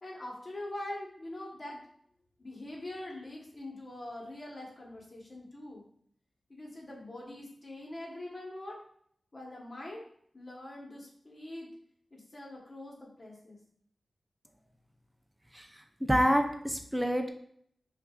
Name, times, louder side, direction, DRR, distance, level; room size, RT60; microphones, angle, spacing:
voice 1, 0.0-1.8 2.4-5.8 6.5-8.8 9.3-10.0 10.3-11.7 12.1-13.6, left 1 dB, 45° left, -2 dB, 1.1 m, -43 dB
voice 2, 16.0-17.3, equal, 10° right, 4 dB, 0.5 m, -27 dB
5.7 x 2.5 x 2.4 m, 0.66 s
wide cardioid pair, 65°, 0 cm